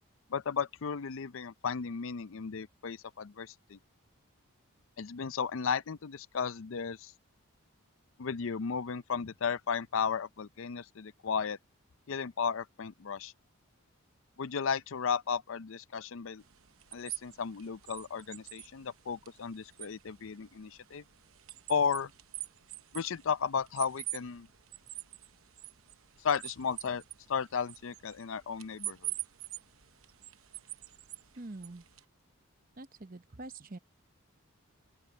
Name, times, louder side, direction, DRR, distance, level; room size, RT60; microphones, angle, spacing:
voice 1, 0.3-3.8 5.0-7.1 8.2-11.6 12.1-13.3 14.4-16.4 16.9-21.0 21.7-22.1 22.9-24.5 26.2-27.0 27.3-29.1, left 6 dB, 65° left, 0.5 m, -34 dB
sound 1, 16.4-32.0, right 15 dB, 70° right, 0.9 m, -46 dB
voice 2, 31.4-31.8 32.8-33.8, right 2 dB, 40° right, 0.8 m, -45 dB
open air
head